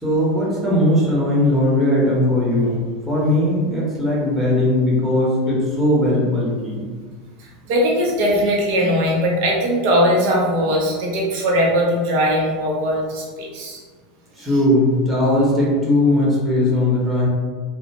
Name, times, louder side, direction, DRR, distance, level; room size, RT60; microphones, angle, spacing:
voice 1, 0.0-6.9 14.4-17.3, left 1 dB, ahead, -7 dB, 0.9 m, -18 dB
voice 2, 7.4-13.8, equal, 60° right, -2 dB, 0.7 m, -20 dB
2.4 x 2.2 x 2.8 m, 1.5 s
hypercardioid pair, 90°, 0 cm